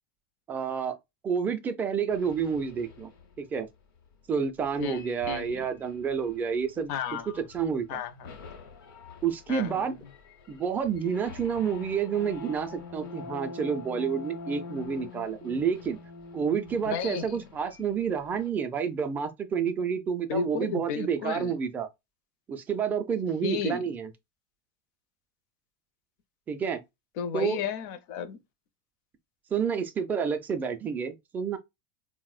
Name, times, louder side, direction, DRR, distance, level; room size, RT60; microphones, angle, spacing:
voice 1, 0.5-0.9 1.2-3.1 3.4-3.7 4.3-6.9 7.5-8.0 9.2-9.9 10.5-16.0 16.3-21.9 22.5-24.1 26.5-26.8 27.3-27.6 29.5-31.6, right 6 dB, 15° right, 0.3 m, -29 dB
sound 1, 2.1-3.4 4.6-7.1 7.5-7.9 8.2-18.5, left 4 dB, 85° left, 0.9 m, -45 dB
voice 2, 4.8-5.7 6.9-7.4 7.9-8.3 9.5-10.0 16.8-17.4 20.3-21.6 23.4-23.9 27.2-28.4, left 7 dB, 50° left, 0.5 m, -33 dB
4.1 x 2.0 x 2.3 m
supercardioid pair, 155°, 11 cm